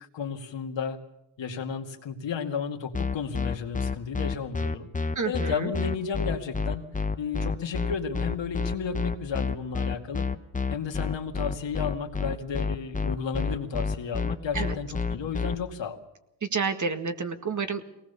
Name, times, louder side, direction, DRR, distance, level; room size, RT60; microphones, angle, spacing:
voice 1, 0.1-1.0 1.4-4.9 5.3-6.9 7.2-10.3 10.7-16.0, left 6 dB, 70° left, 4 dB, 2.4 m, -33 dB
sound 1, 2.9-15.5, left 4 dB, 15° left, 1.0 m, -29 dB
voice 2, 5.2-5.7 14.5-14.8 16.4-17.8, right 5 dB, 40° right, 8 dB, 1.9 m, -29 dB
22.5 x 19.0 x 6.9 m, 0.84 s
cardioid pair, 90°, 46 cm